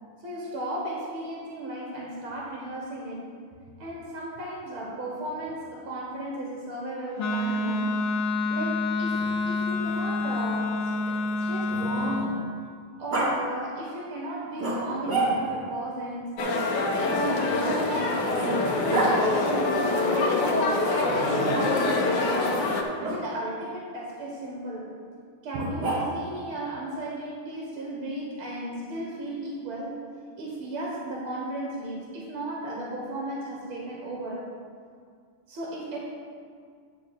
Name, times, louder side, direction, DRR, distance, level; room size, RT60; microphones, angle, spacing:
voice 1, 0.2-3.3 3.8-7.9 8.5-12.4 13.0-16.4 17.0-20.8 21.2-22.7 23.0-25.0 25.4-30.0 30.4-34.5 35.5-36.0, right 1 dB, 75° right, -3 dB, 2.1 m, -35 dB
Wind instrument woodwind instrument, 7.2-12.3, left 2 dB, 85° left, 1.8 m, -28 dB
Growling, 9.0-12.4 13.1-13.3 14.6-15.7 17.0-19.2 21.0-21.7 23.0-23.2 25.5-26.4, right 2 dB, 50° right, 2.3 m, -31 dB
sound 1, 16.4-22.8, left 2 dB, 65° left, 1.4 m, -25 dB
10.0 x 3.7 x 7.2 m, 2.1 s
omnidirectional pair, 2.4 m